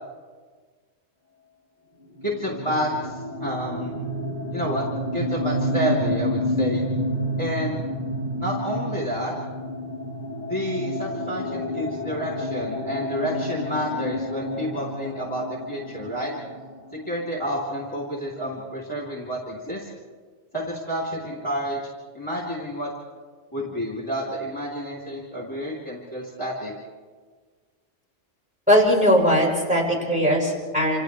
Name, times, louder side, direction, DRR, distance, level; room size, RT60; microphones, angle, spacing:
voice 1, 2.2-3.9 4.5-4.9 5.1-6.8 7.4-7.8 8.4-9.3 10.5-16.3 16.9-19.9 20.5-21.8 22.1-22.9 23.5-26.7, equal, 25° left, -4 dB, 3.3 m, -29 dB
sound 1, 2.2-17.8, left 1 dB, 35° right, 6.0 m, -30 dB
voice 2, 28.7-31.0, equal, 5° right, -3 dB, 6.5 m, -19 dB
28.5 x 28.0 x 3.4 m, 1.5 s
omnidirectional pair, 1.2 m